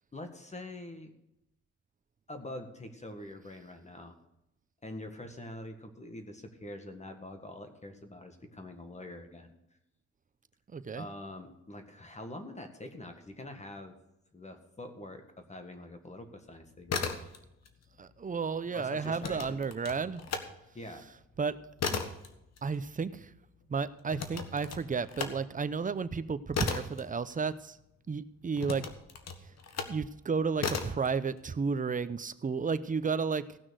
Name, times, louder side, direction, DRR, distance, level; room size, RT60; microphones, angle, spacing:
voice 1, 0.1-1.1 2.3-4.2 4.8-9.6 11.0-14.0 14.3-17.2 18.7-19.6 20.7-21.0, left 1 dB, 25° left, 6 dB, 1.8 m, -45 dB
voice 2, 10.7-11.1 18.0-20.2 21.4-21.6 21.9-22.0 22.6-23.3 23.7-27.8 28.1-28.8 29.9-33.6, right 5 dB, 25° right, 13 dB, 0.7 m, -32 dB
sound 1, 16.7-17.7 18.0-20.5 20.9-27.9 28.5-30.0 30.6-31.1, left 5 dB, 60° left, 1.6 m, -36 dB
16.5 x 6.1 x 6.4 m, 0.86 s
cardioid pair, 90°, 30 cm